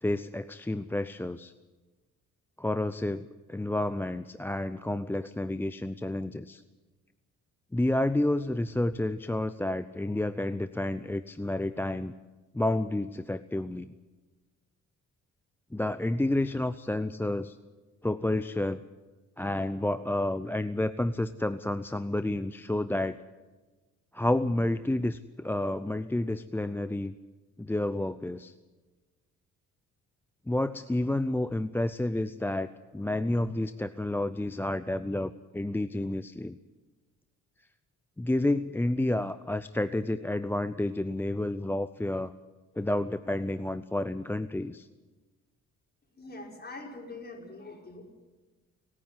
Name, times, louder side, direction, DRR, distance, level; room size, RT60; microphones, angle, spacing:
voice 1, 0.0-1.5 2.6-6.6 7.7-12.1 12.5-13.9 15.7-17.6 18.0-18.8 19.4-23.2 24.1-27.1 27.6-28.5 30.5-36.6 38.2-42.3 42.8-44.9, left 1 dB, 5° left, 12 dB, 0.5 m, -30 dB
voice 2, 46.1-48.1, left 2 dB, 35° left, 1 dB, 5.3 m, -43 dB
29.0 x 9.7 x 9.7 m, 1.3 s
cardioid pair, 90°, 30 cm